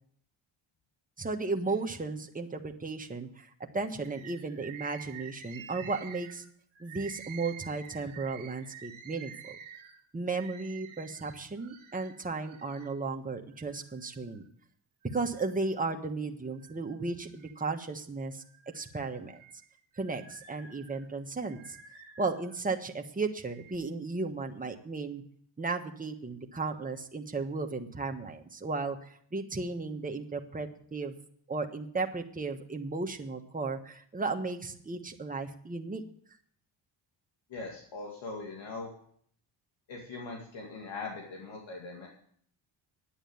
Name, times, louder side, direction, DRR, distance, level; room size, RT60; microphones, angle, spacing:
voice 1, 1.2-6.4 6.8-9.6 10.1-14.4 15.1-18.4 18.7-19.4 20.0-21.8 22.2-25.2 25.6-31.2 31.5-36.0, right 3 dB, 15° right, 4 dB, 1.4 m, -35 dB
Bird, 4.0-12.9 13.5-14.5 15.0-16.0 16.4-17.8 18.3-22.6 23.3-23.8, right 8 dB, 75° right, 1.9 m, -50 dB
voice 2, 37.5-38.9 39.9-42.1, left 3 dB, 65° left, 0 dB, 2.3 m, -41 dB
10.0 x 9.0 x 7.1 m, 0.63 s
cardioid pair, 80°, 49 cm